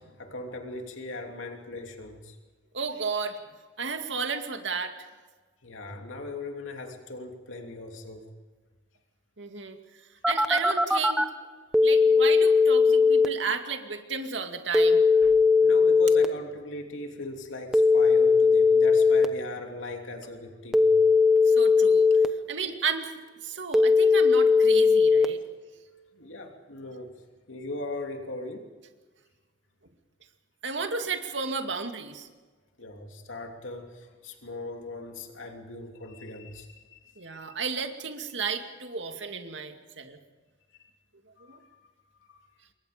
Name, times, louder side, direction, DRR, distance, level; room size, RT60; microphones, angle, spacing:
voice 1, 0.0-2.4 5.6-8.3 15.6-20.9 26.1-28.7 32.8-37.6 41.4-41.7 42.3-42.5, left 2 dB, 90° left, 3 dB, 3.0 m, -39 dB
voice 2, 2.7-3.4 3.8-5.0 9.4-9.8 10.3-11.2 11.8-15.3 21.4-22.1 22.5-23.1 23.4-25.4 30.6-32.3 37.2-40.2 41.5-41.6, right 5 dB, 70° right, 5 dB, 2.4 m, -33 dB
Telephone, 10.2-11.2 11.7-13.3 14.7-16.3 17.7-19.3 20.7-22.3 23.7-25.3, left 4 dB, 5° right, 1.0 m, -19 dB
27.5 x 23.0 x 5.2 m, 1.3 s
head